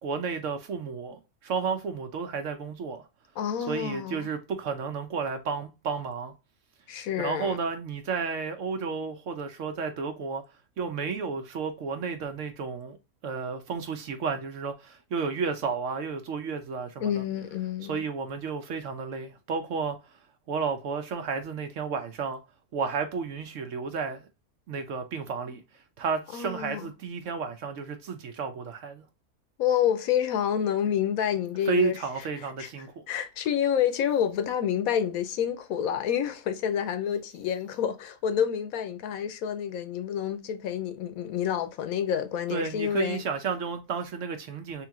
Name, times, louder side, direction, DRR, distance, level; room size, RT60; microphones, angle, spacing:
voice 1, 0.0-3.0 3.7-6.3 7.2-10.4 10.8-13.0 13.2-17.2 17.9-20.0 20.5-22.4 22.7-24.3 24.7-25.6 26.0-29.0 31.7-33.0 42.5-44.9, right 5 dB, 65° right, 0.9 m, -32 dB
voice 2, 3.4-4.3 6.9-7.6 17.0-18.0 26.3-26.9 29.6-32.0 32.6-43.2, left 9 dB, 75° left, 1.0 m, -28 dB
3.5 x 3.1 x 3.5 m
omnidirectional pair, 1.6 m